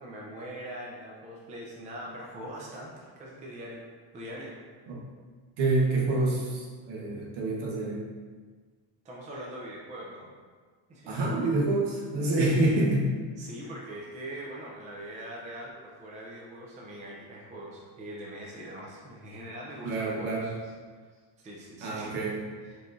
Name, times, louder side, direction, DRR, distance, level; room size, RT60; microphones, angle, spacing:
voice 1, 0.0-3.8 4.1-4.5 9.0-10.3 10.9-11.1 12.3-12.8 13.4-20.7 21.4-22.1 22.6-22.8, right 1 dB, 15° right, -3 dB, 0.4 m, -42 dB
voice 2, 5.6-8.1 11.1-13.1 19.8-20.5 21.8-22.4, right 2 dB, 65° right, -4 dB, 1.2 m, -27 dB
4.6 x 3.8 x 2.6 m, 1.5 s
cardioid pair, 155°, 44 cm